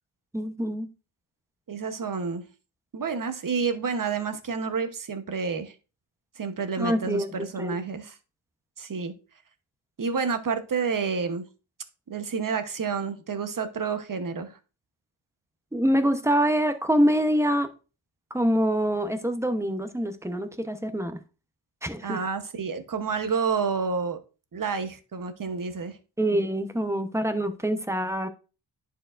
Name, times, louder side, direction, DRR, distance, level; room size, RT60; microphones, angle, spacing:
voice 1, 0.3-0.9 6.8-7.8 15.7-17.7 18.3-21.2 21.8-22.2 26.2-28.3, equal, 5° right, 0.9 m, -25 dB
voice 2, 1.7-2.4 2.9-5.7 6.4-8.2 8.8-9.1 10.0-11.5 12.1-14.6 22.0-24.2 24.5-26.0, right 5 dB, 40° right, 1.0 m, -29 dB
10.5 x 4.6 x 2.5 m
cardioid pair, 85°, 48 cm